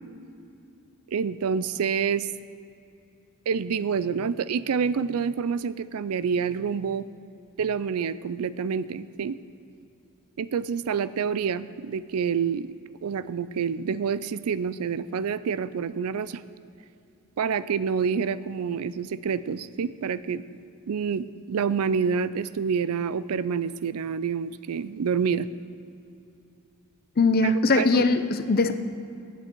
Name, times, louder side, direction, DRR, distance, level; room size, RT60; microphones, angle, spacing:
voice 1, 1.1-2.3 3.5-7.1 7.6-9.4 10.4-12.7 13.0-16.4 17.4-20.6 20.9-25.5 27.4-28.1, right 6 dB, 85° right, 16 dB, 0.4 m, -27 dB
voice 2, 27.2-28.8, left 3 dB, 45° left, 10 dB, 0.6 m, -21 dB
15.0 x 9.1 x 4.5 m, 2.6 s
head